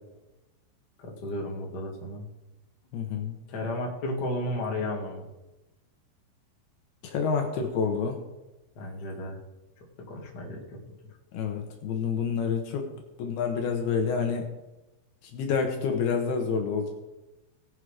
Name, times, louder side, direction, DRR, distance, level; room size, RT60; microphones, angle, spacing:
voice 1, 1.0-2.2 3.5-5.3 8.7-9.4 10.1-10.8, left 1 dB, 90° left, -1 dB, 0.9 m, -33 dB
voice 2, 2.9-3.4 7.0-8.2 11.3-12.9 13.2-14.5 15.3-16.9, left 6 dB, 75° left, 3 dB, 2.5 m, -28 dB
19.0 x 6.4 x 4.9 m, 1.0 s
omnidirectional pair, 5.8 m